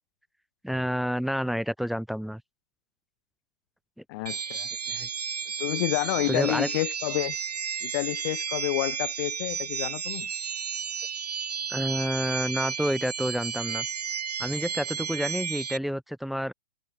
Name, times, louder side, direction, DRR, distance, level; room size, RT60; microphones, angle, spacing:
voice 1, 0.6-2.4 4.9-5.1 6.3-6.7 11.7-13.9 14.4-16.5, equal, ahead, 0.9 m, -29 dB
voice 2, 4.1-4.7 5.6-7.4 7.8-10.3, left 25 dB, 30° left, 0.7 m, -29 dB
sound 1, 4.3-15.8, right 7 dB, 75° right, 0.7 m, -33 dB
figure-of-eight pair, 120°, 21 cm